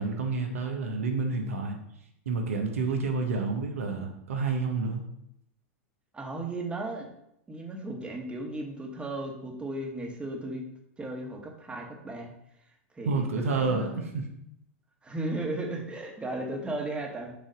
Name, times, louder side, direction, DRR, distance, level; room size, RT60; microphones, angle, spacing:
voice 1, 0.0-1.8 2.2-5.0 13.0-14.3, right 4 dB, 85° right, 4 dB, 1.2 m, -29 dB
voice 2, 6.1-7.1 7.5-10.6 11.0-12.3 12.9-13.2 13.5-14.1 15.0-17.3, right 2 dB, 15° right, 2 dB, 1.3 m, -35 dB
6.8 x 2.8 x 5.1 m, 0.76 s
hypercardioid pair, 110°, 7 cm